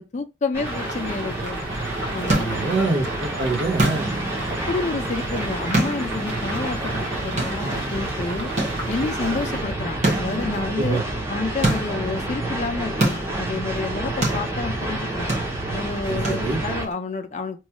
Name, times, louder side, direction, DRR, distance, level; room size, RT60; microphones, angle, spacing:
voice 1, 0.0-1.6 2.1-2.6 4.3-8.5 8.9-11.0 11.3-15.3 15.7-17.6, left 3 dB, 40° left, 0.4 m, -29 dB
sound 1, 0.5-16.9, right 1 dB, 15° right, 0.7 m, -29 dB
sound 2, 0.6-9.6, right 1 dB, 90° right, 1.3 m, -36 dB
sound 3, 1.7-16.9, right 1 dB, 35° right, 1.1 m, -29 dB
voice 2, 2.4-4.2 10.8-11.0 16.1-16.6, right 3 dB, 70° right, 0.8 m, -25 dB
3.0 x 2.3 x 2.8 m
head